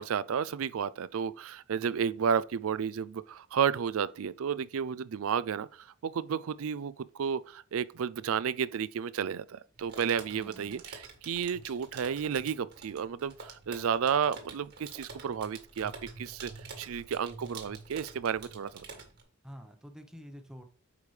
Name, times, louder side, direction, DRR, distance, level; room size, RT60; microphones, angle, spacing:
voice 1, 0.0-15.9 16.2-16.5 16.8-18.7, right 7 dB, 65° right, 0.4 m, -32 dB
sound 1, 9.8-19.2, right 4 dB, 50° right, 1.6 m, -48 dB
voice 2, 10.3-10.8 19.4-20.6, equal, 5° right, 0.9 m, -48 dB
8.3 x 5.2 x 3.3 m
head